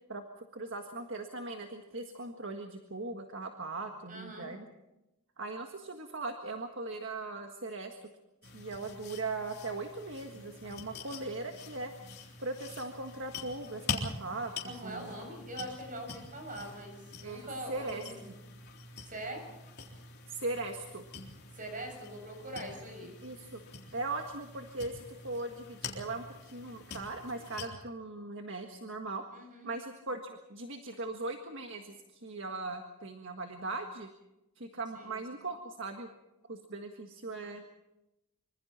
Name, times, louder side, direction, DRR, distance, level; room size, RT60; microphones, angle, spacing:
voice 1, 0.5-4.7 5.4-8.1 8.4-11.9 12.4-15.1 17.2-18.0 20.3-21.0 23.2-23.6 23.9-29.2 29.6-34.1 34.6-36.1 36.5-37.7, right 3 dB, 55° right, 4 dB, 1.7 m, -39 dB
voice 2, 4.1-4.5 14.6-18.3 19.0-19.5 21.5-23.1 29.3-29.7 34.9-35.2, right 1 dB, 35° right, 3 dB, 7.3 m, -43 dB
sound 1, 8.4-27.7, left 4 dB, 50° left, 3.7 m, -45 dB
25.5 x 25.5 x 4.4 m, 0.94 s
head